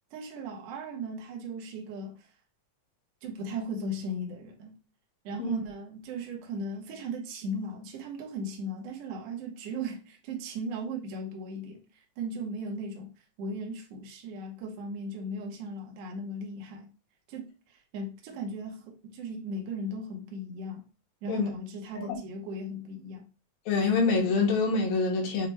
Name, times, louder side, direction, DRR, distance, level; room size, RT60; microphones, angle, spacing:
voice 1, 0.1-2.3 3.2-4.8 5.2-16.9 17.3-20.9 21.2-23.3, right 1 dB, 80° right, 1.4 m, -37 dB
voice 2, 23.7-25.5, left 4 dB, 80° left, 2.7 m, -25 dB
6.5 x 2.2 x 3.2 m
omnidirectional pair, 4.1 m